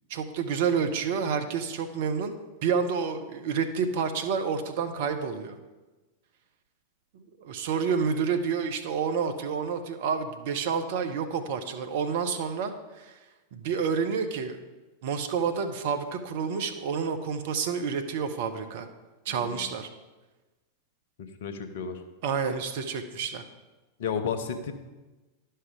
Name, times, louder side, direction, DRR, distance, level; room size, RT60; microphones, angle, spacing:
voice 1, 0.1-2.4 2.6-5.6 7.4-13.2 13.5-14.6 15.0-18.9 19.2-19.9 22.2-23.4, right 6 dB, 50° right, 7 dB, 0.8 m, -29 dB
voice 2, 19.3-19.7 21.2-22.0 24.0-24.7, left 6 dB, 55° left, 8 dB, 0.8 m, -33 dB
11.0 x 5.6 x 4.9 m, 1.2 s
figure-of-eight pair, 90°, 0 cm